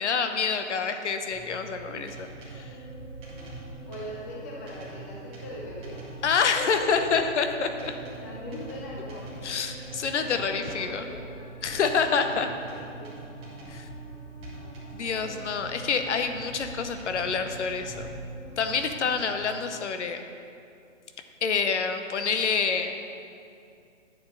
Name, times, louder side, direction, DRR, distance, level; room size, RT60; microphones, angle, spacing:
voice 1, 0.0-2.1 2.5-2.7 6.2-8.0 9.4-11.1 11.6-12.5 13.7-13.9 14.9-18.1 18.6-20.3 21.4-22.9, left 5 dB, 65° left, 7 dB, 0.9 m, -27 dB
sound 1, 1.3-19.2, right 3 dB, 15° right, 2.0 m, -43 dB
sound 2, 2.5-19.5, right 1 dB, 35° left, 1.7 m, -48 dB
voice 2, 3.9-6.0 6.8-7.3 8.2-9.6 10.2-11.2 11.9-13.2 15.8-16.1, left 1 dB, 15° left, -3 dB, 0.5 m, -41 dB
10.5 x 7.1 x 3.9 m, 2.5 s
hypercardioid pair, 150°, 38 cm